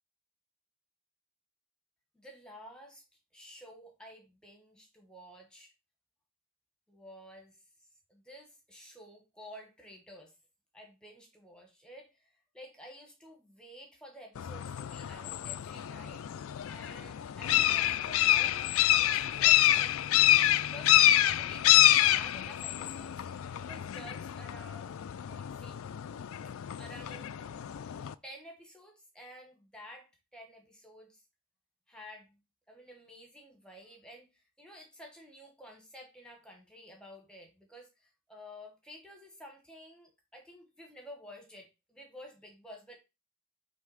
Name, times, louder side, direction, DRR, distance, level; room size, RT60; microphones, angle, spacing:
voice 1, 2.1-3.0 3.3-5.7 6.9-7.6 8.1-10.3 10.7-12.3 12.5-16.3 16.7-18.6 18.9-25.8 26.4-27.3 28.2-31.2 31.9-32.4 32.7-34.3 34.6-37.9 38.3-43.0, equal, 5° left, 1.4 m, -51 dB
sound 1, 14.4-28.1, left 13 dB, 70° left, 0.3 m, -27 dB
5.7 x 3.4 x 4.9 m
head